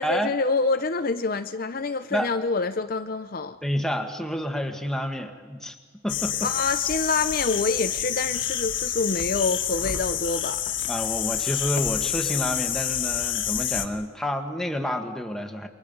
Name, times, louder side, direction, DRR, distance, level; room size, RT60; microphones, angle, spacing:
voice 1, 0.0-3.6 6.4-10.7, left 3 dB, 45° left, 9 dB, 0.6 m, -26 dB
voice 2, 3.6-5.8 6.0-6.5 10.9-15.7, equal, 5° left, 4 dB, 1.6 m, -29 dB
sound 1, 6.1-13.9, left 10 dB, 70° left, 1.6 m, -28 dB
29.5 x 23.0 x 5.5 m, 1.5 s
head